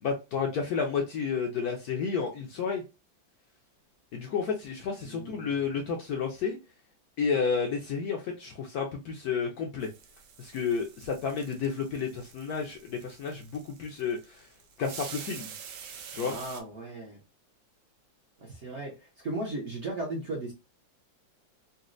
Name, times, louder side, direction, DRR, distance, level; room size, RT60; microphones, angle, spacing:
voice 1, 0.0-2.8 4.1-6.6 7.2-9.9 10.4-14.5 14.8-15.5 16.1-16.3, left 5 dB, 70° left, 0.9 m, -31 dB
voice 2, 5.0-5.6 16.3-17.2 18.4-20.5, right 2 dB, 50° right, 0.9 m, -36 dB
sound 1, 9.8-16.6, right 7 dB, 85° right, 1.4 m, -47 dB
4.1 x 2.1 x 2.5 m
omnidirectional pair, 2.1 m